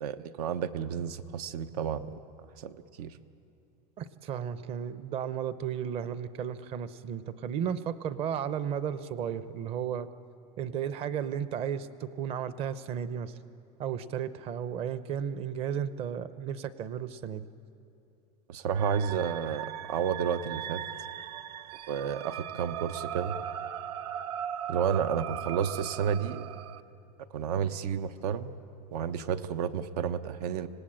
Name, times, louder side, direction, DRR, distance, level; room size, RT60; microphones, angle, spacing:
voice 1, 0.0-2.1 2.6-3.1 18.5-20.8 21.9-23.4 24.7-26.5 27.3-28.5 28.9-30.7, right 7 dB, 85° right, 11 dB, 1.1 m, -31 dB
voice 2, 4.0-10.1 10.6-13.3 13.8-17.4, right 8 dB, 30° right, 14 dB, 0.7 m, -34 dB
sound 1, 18.7-26.8, right 10 dB, 70° right, 0.8 m, -38 dB
26.0 x 18.5 x 8.8 m, 2.6 s
supercardioid pair, 170°, 20 cm